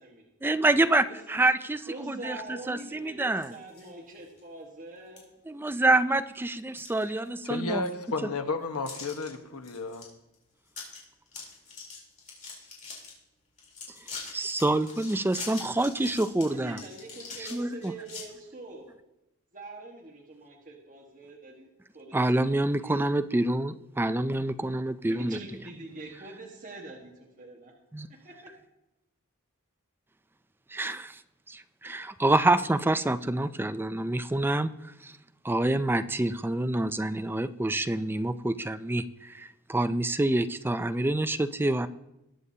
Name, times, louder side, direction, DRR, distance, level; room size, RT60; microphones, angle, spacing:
voice 1, 0.4-2.4 2.7-3.6 5.5-7.8 14.3-16.8 17.4-17.9 22.1-25.4 27.9-28.1 30.7-31.2 31.5-34.7 35.0-35.1 35.4-41.9, right 2 dB, 10° right, 0.4 m, -27 dB
voice 2, 1.9-5.3 16.4-18.8 19.5-21.7 21.9-23.1 25.1-27.7 28.2-28.5, right 2 dB, 35° right, 1.5 m, -44 dB
sound 1, 3.3-3.9 4.4-4.5 5.2-5.3 5.7-6.1 6.5-7.6 7.9-8.0 8.9-9.3 9.6-10.0 10.3-10.4 10.7-11.0 11.3-13.1 13.6-18.2, left 4 dB, 35° left, 3.6 m, -43 dB
voice 3, 7.4-10.1, left 3 dB, 80° left, 1.2 m, -32 dB
20.5 x 8.1 x 2.8 m
head